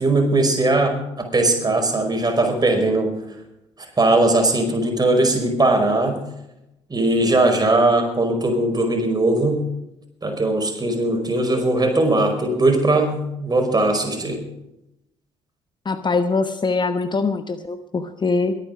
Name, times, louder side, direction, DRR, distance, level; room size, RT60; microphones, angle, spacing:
voice 1, 0.0-3.1 4.0-6.2 6.9-9.6 10.2-14.4, right 2 dB, 25° right, 4 dB, 5.1 m, -19 dB
voice 2, 15.8-18.6, left 4 dB, 30° left, 10 dB, 1.0 m, -23 dB
22.0 x 9.4 x 5.1 m, 0.88 s
hypercardioid pair, 50°, 15 cm